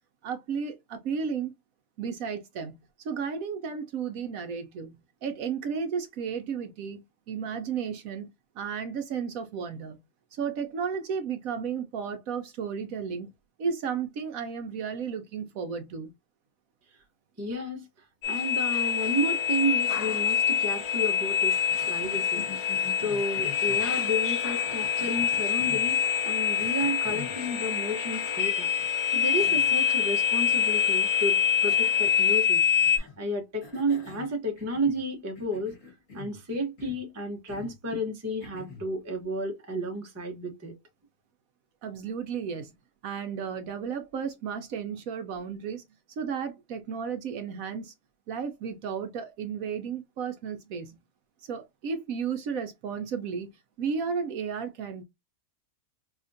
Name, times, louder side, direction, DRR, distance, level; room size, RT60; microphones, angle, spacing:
voice 1, 0.2-1.5 2.0-10.0 10.3-13.3 13.6-16.1 41.8-42.7 43.0-47.9 48.3-51.0 51.4-53.5 53.8-55.0, right 6 dB, 70° right, 0.9 m, -33 dB
voice 2, 17.4-17.9 18.3-21.6 21.9-22.5 23.0-28.7 29.1-35.8 36.1-40.7, equal, 20° right, 0.5 m, -32 dB
sound 1, 18.2-33.0, left 7 dB, 70° left, 1.1 m, -25 dB
Cough, 21.7-23.9 24.6-25.9 26.6-27.4 28.8-28.9 29.4-29.8 30.1-30.2 31.7-32.2 32.8-33.2 33.6-35.0 35.4-36.4 36.8-37.1 37.5-37.8 38.4-38.9, left 5 dB, 50° left, 2.5 m, -46 dB
4.9 x 2.4 x 2.6 m
omnidirectional pair, 1.7 m